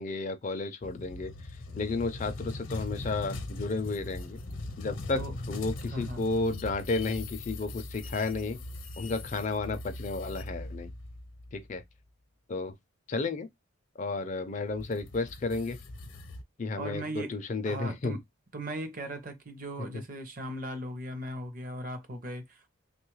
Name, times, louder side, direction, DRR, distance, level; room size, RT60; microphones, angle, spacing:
voice 1, 0.0-1.3 1.7-4.4 4.8-5.2 5.5-8.6 9.0-10.9 11.5-11.8 12.5-12.7 13.1-13.5 14.0-15.8 16.6-18.2, left 3 dB, 35° left, 0.4 m, -32 dB
sound 1, 0.8-11.7 14.6-16.4, left 2 dB, 70° left, 0.7 m, -40 dB
voice 2, 5.9-6.2 16.8-17.3 17.6-18.2 18.5-22.7, right 1 dB, 40° right, 0.6 m, -38 dB
3.0 x 2.3 x 3.1 m
head